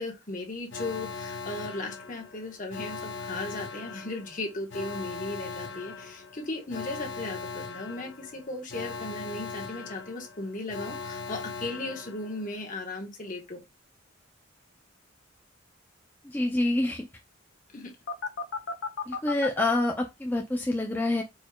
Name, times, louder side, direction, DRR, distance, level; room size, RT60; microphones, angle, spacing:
voice 1, 0.0-13.6 17.7-17.9, left 2 dB, 40° left, 1.3 m, -36 dB
Alarm, 0.7-12.6 18.1-19.6, left 4 dB, 70° left, 0.7 m, -38 dB
voice 2, 16.2-17.1 19.1-21.2, left 2 dB, 10° left, 0.4 m, -27 dB
4.7 x 4.2 x 2.3 m
head